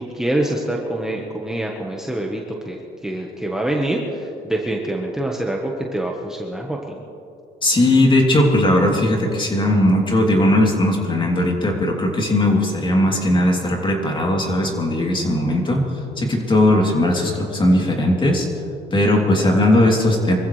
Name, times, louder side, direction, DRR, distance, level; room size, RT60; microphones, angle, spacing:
voice 1, 0.0-7.0, right 1 dB, 5° right, -1 dB, 1.3 m, -25 dB
voice 2, 7.6-15.8 16.2-18.5 18.9-20.4, left 1 dB, 25° left, 0 dB, 3.2 m, -18 dB
25.0 x 15.0 x 3.3 m, 2.8 s
cardioid pair, 115°, 18 cm